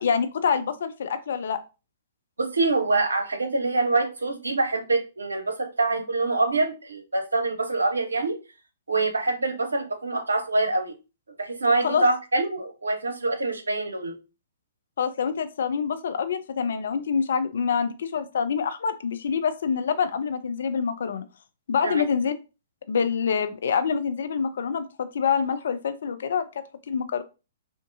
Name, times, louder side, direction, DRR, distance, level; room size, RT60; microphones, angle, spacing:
voice 1, 0.0-1.6 11.8-12.1 15.0-21.3 21.7-22.3 22.9-27.2, left 6 dB, 60° left, 0.4 m, -26 dB
voice 2, 2.4-8.4 8.9-10.9 11.4-14.1 21.8-22.0, right 2 dB, 75° right, 0.7 m, -25 dB
3.5 x 2.6 x 2.5 m
figure-of-eight pair, 115°, 0 cm